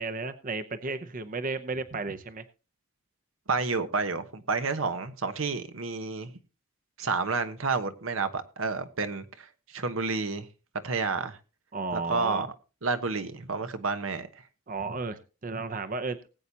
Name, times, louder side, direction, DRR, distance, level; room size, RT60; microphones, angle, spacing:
voice 1, 0.0-2.4 11.7-12.5 14.7-16.2, right 3 dB, 40° right, 0.7 m, -33 dB
voice 2, 3.5-6.3 7.0-10.5 10.8-11.4 11.9-12.5 12.8-14.3, right 4 dB, 85° right, 1.1 m, -30 dB
19.5 x 8.4 x 2.8 m
head